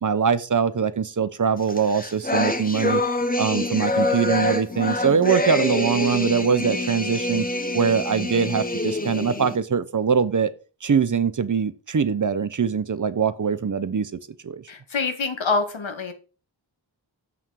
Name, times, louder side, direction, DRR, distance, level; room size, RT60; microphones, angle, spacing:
voice 1, 0.0-3.0 3.4-7.4 7.7-10.5 10.8-14.6, right 6 dB, 40° right, 0.7 m, -23 dB
sound 1, 1.7-9.6, left 2 dB, 20° left, 1.0 m, -26 dB
voice 2, 14.7-16.1, left 4 dB, 80° left, 1.4 m, -26 dB
7.0 x 5.6 x 4.7 m
wide cardioid pair, 85°, 46 cm